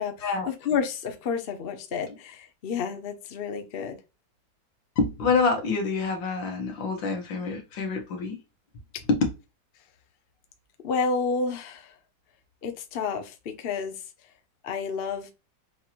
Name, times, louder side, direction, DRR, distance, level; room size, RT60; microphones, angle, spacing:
voice 1, 0.0-4.0 10.8-11.9 12.6-14.0 14.6-15.3, left 5 dB, 55° left, 0.6 m, -30 dB
voice 2, 5.0-8.4 9.1-9.2, left 4 dB, 80° left, 1.8 m, -26 dB
6.2 x 2.9 x 2.4 m
omnidirectional pair, 2.0 m